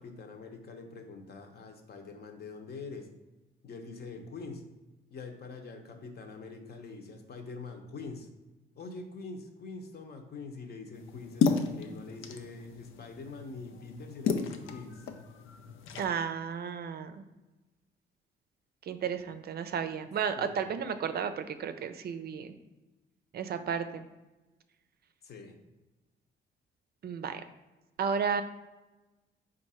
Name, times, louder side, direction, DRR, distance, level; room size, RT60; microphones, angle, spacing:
voice 1, 0.0-3.1 3.6-4.7 5.1-8.3 8.7-15.1 20.3-20.6 25.2-25.6, left 3 dB, 55° left, 4 dB, 0.8 m, -44 dB
sound 1, 10.9-16.1, left 5 dB, 85° left, 0.5 m, -33 dB
voice 2, 16.0-17.3 18.8-22.5 23.3-24.1 27.0-27.4 28.0-28.4, right 7 dB, 55° right, 9 dB, 0.4 m, -33 dB
4.6 x 2.6 x 4.2 m, 1.1 s
cardioid pair, 90°, 20 cm